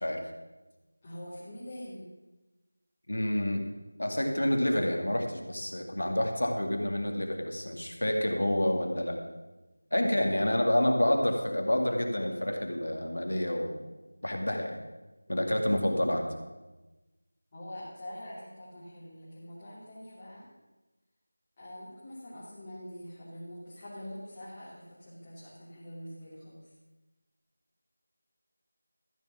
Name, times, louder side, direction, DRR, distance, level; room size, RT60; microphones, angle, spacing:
voice 1, 1.0-2.1 17.5-20.5 21.6-26.7, equal, 20° left, -10 dB, 2.9 m, -44 dB
voice 2, 3.1-3.7 4.0-9.2 9.9-13.8 14.2-14.8 15.3-16.3, left 1 dB, 75° left, 3 dB, 2.5 m, -28 dB
13.5 x 7.3 x 7.0 m, 1.1 s
figure-of-eight pair, 175°, 0 cm